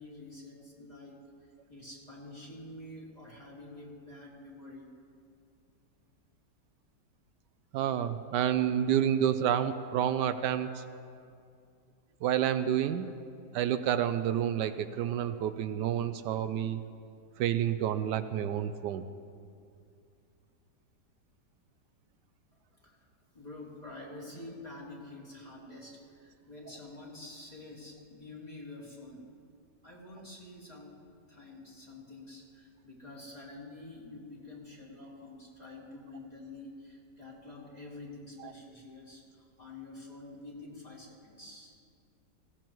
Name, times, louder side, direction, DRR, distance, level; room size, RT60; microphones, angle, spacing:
voice 1, 0.0-4.9 22.8-23.0 23.3-29.2 29.8-31.0 31.3-41.8, left 2 dB, 25° left, -5 dB, 2.6 m, -48 dB
voice 2, 7.7-10.8 12.2-13.1 13.5-16.8 17.4-19.0 38.4-38.5, right 10 dB, 80° right, 11 dB, 1.2 m, -29 dB
19.5 x 16.5 x 3.1 m, 2.3 s
omnidirectional pair, 1.9 m